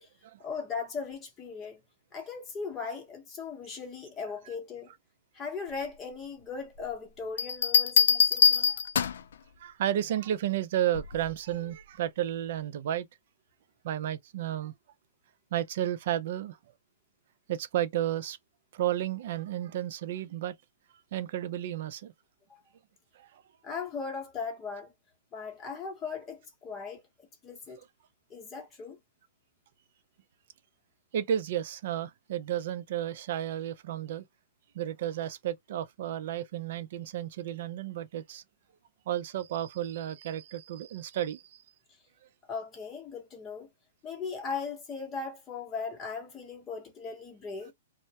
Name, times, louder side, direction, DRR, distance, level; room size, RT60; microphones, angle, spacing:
voice 1, 0.4-1.8 2.1-4.9 5.3-8.8 22.5-22.6 23.6-24.9 25.3-27.8 28.3-29.0 41.9-42.0 42.5-43.7 44.0-47.7, left 5 dB, 15° left, 0.9 m, -38 dB
sound 1, 7.4-9.3 10.9-11.3, left 7 dB, 70° left, 0.3 m, -23 dB
voice 2, 9.6-13.1 13.8-14.7 15.5-16.6 17.5-18.4 18.7-20.6 21.1-22.1 23.2-23.4 31.1-34.2 34.7-38.4 39.1-41.6, right 11 dB, 50° right, 0.4 m, -32 dB
2.2 x 2.0 x 2.8 m
hypercardioid pair, 155°, 0 cm